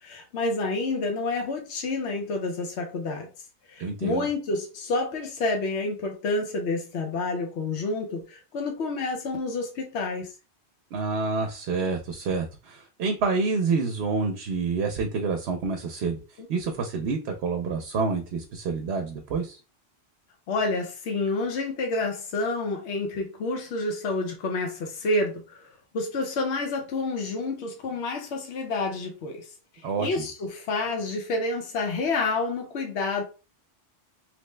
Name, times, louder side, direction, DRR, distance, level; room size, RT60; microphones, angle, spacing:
voice 1, 0.0-3.3 3.7-10.3 16.4-16.5 20.5-25.6 25.9-29.5 30.0-33.2, left 3 dB, 80° left, 1.0 m, -29 dB
voice 2, 3.8-4.3 10.9-16.2 16.5-19.6 29.8-30.3, right 4 dB, 70° right, 0.8 m, -28 dB
3.0 x 2.1 x 3.1 m
omnidirectional pair, 1.1 m